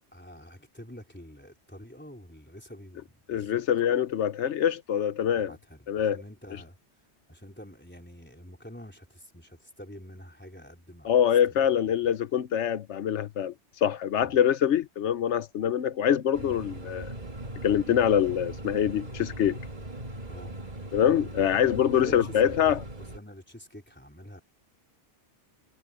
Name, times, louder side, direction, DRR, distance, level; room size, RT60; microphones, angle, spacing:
voice 1, 0.1-3.6 5.3-6.8 7.3-11.2 11.6-11.9 14.2-14.4 20.3-20.6 21.9-24.4, equal, 10° left, 4.0 m, -47 dB
voice 2, 3.3-5.5 5.9-6.2 11.0-13.5 13.8-17.1 17.6-19.6 20.9-22.8, left 9 dB, 85° left, 1.0 m, -24 dB
sound 1, 16.3-23.2, right 1 dB, 35° right, 2.0 m, -40 dB
omnidirectional pair, 1.2 m